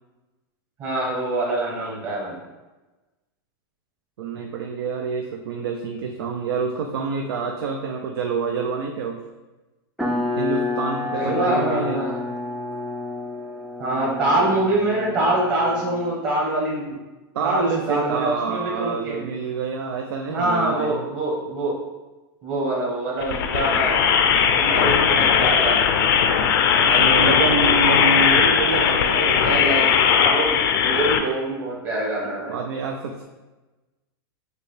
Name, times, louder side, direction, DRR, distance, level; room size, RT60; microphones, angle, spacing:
voice 1, 0.8-2.4 4.3-4.4 11.1-12.3 13.8-17.0 17.4-19.2 20.3-21.7 22.4-24.0 24.6-25.9 29.4-30.5 30.8-32.5, right 1 dB, 35° right, -5 dB, 1.4 m, -24 dB
voice 2, 4.2-9.2 10.4-12.0 17.3-21.0 26.8-29.6 32.5-33.2, right 5 dB, 80° right, 3 dB, 0.5 m, -27 dB
sound 1, 10.0-16.2, left 3 dB, ahead, 0.3 m, -29 dB
sound 2, 23.2-31.2, left 7 dB, 65° left, 0.5 m, -18 dB
6.6 x 2.3 x 3.3 m, 1.1 s
supercardioid pair, 145°, 12 cm